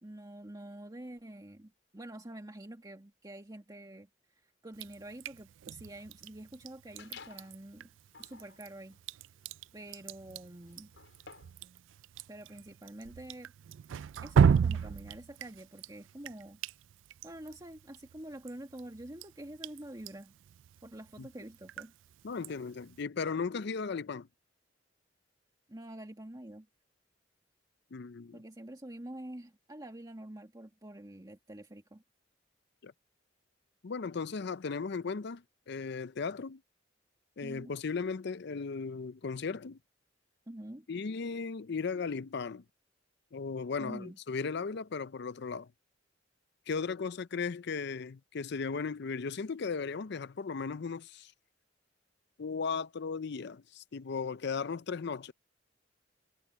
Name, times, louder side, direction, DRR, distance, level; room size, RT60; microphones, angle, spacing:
voice 1, 0.0-7.9 8.2-9.0 9.7-10.9 12.3-13.5 14.2-16.6 17.2-20.3 20.8-21.9 25.7-26.7 28.3-32.0 37.4-37.7 40.5-40.9 43.8-44.2, right 1 dB, 20° right, 2.0 m, -47 dB
Drip, 4.7-23.0, right 6 dB, 80° right, 0.4 m, -35 dB
sound 1, 7.0-7.6 8.1-11.7, left 5 dB, 80° left, 4.9 m, -54 dB
voice 2, 22.2-24.3 27.9-28.4 32.8-32.9 33.8-36.6 37.4-39.8 40.9-42.6 43.3-45.7 46.7-51.3 52.4-55.3, left 5 dB, 60° left, 0.5 m, -36 dB
head